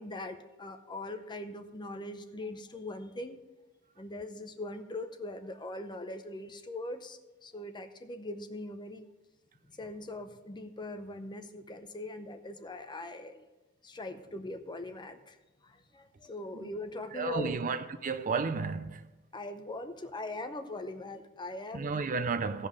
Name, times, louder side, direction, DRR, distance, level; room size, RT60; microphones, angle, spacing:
voice 1, 0.0-3.4 4.0-9.1 9.8-13.5 13.8-15.4 15.6-17.6 19.3-22.0, left 2 dB, 20° left, 0.6 m, -41 dB
voice 2, 17.1-19.1 21.7-22.7, right 4 dB, 40° right, 0.5 m, -32 dB
16.0 x 5.3 x 5.1 m
head